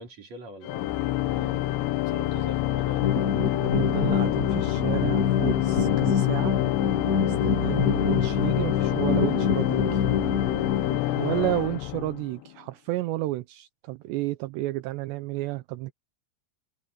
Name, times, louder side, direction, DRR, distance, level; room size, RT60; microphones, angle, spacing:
voice 1, 0.0-3.2 10.7-11.7, right 1 dB, 40° right, 5.2 m, -44 dB
Organ, 0.6-12.5, left 15 dB, 75° left, 3.1 m, -27 dB
sound 1, 3.0-11.0, left 6 dB, 60° left, 1.0 m, -26 dB
voice 2, 3.6-6.6 7.2-10.0 11.2-15.9, right 17 dB, 80° right, 2.9 m, -31 dB
omnidirectional pair, 5.2 m